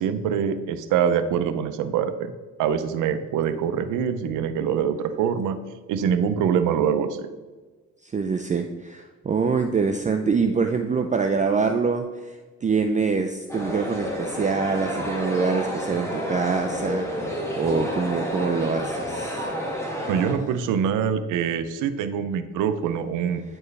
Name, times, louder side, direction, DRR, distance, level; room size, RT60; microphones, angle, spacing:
voice 1, 0.0-2.3 2.6-5.6 5.9-7.3 20.1-23.4, right 7 dB, 85° right, 11 dB, 0.6 m, -24 dB
voice 2, 8.0-19.5, right 5 dB, 25° right, 5 dB, 0.5 m, -25 dB
sound 1, 13.5-20.3, equal, 10° left, 1.7 m, -30 dB
9.4 x 4.5 x 3.3 m, 1.3 s
cardioid pair, 90°, 30 cm